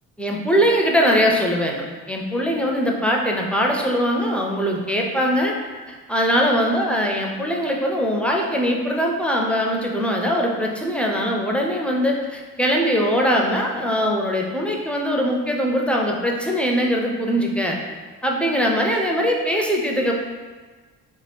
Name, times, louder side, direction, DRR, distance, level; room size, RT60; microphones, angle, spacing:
voice 1, 0.2-5.5 5.9-17.8 18.2-20.1, equal, 5° left, -1 dB, 0.4 m, -21 dB
2.7 x 2.4 x 3.4 m, 1.4 s
cardioid pair, 90°, 30 cm